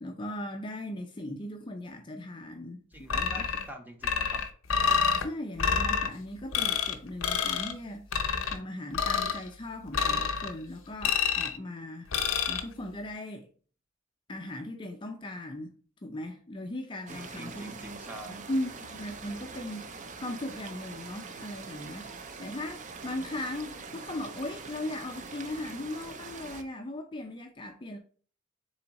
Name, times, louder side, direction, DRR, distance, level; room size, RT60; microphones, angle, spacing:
voice 1, 0.0-3.5 5.2-8.2 8.5-12.2 12.5-13.5 14.3-15.7 16.0-18.0 18.3-28.0, left 1 dB, 25° left, 0.4 m, -38 dB
voice 2, 2.9-4.5 17.1-18.5, equal, 10° right, 0.7 m, -45 dB
sound 1, 3.1-3.7 4.0-5.2 5.6-6.1 6.5-6.9 7.2-7.7 8.1-8.6 8.9-9.4 9.9-10.5 11.0-11.6 12.1-12.6, left 6 dB, 80° left, 0.6 m, -27 dB
sound 2, 17.1-26.6, right 4 dB, 35° right, 0.5 m, -44 dB
3.8 x 3.4 x 4.0 m
head